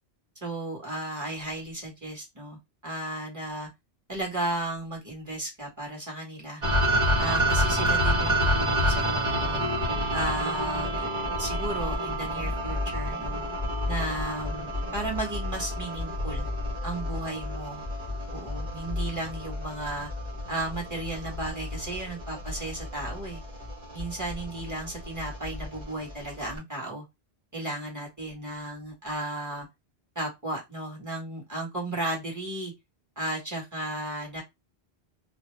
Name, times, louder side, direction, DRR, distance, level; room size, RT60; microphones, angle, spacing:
voice 1, 0.4-3.7 4.1-6.6 7.2-9.7 10.1-11.0 11.4-13.4 13.9-16.5 16.8-17.8 18.3-20.1 20.5-23.4 23.9-27.0 27.5-29.7 30.1-32.7 33.2-34.4, right 1 dB, 15° right, -2 dB, 1.4 m, -34 dB
sound 1, 6.6-26.6, equal, 45° right, 1.2 m, -29 dB
2.7 x 2.1 x 3.2 m, 0.20 s
omnidirectional pair, 1.1 m